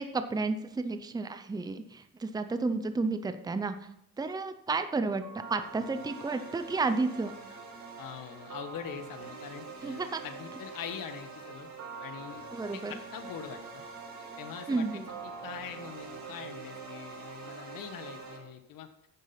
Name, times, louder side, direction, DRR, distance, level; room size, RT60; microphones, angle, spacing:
voice 1, 0.0-3.8 4.2-5.2 5.5-7.4 9.8-10.2 12.5-12.9 14.7-15.1, right 3 dB, 10° right, 9 dB, 0.6 m, -31 dB
sound 1, 5.2-18.4, right 4 dB, 50° right, 4.5 m, -44 dB
voice 2, 8.0-11.7 12.0-12.4 12.7-13.8 14.4-18.9, left 8 dB, 70° left, 9 dB, 1.3 m, -43 dB
10.0 x 7.3 x 5.7 m, 0.78 s
cardioid pair, 135°, 34 cm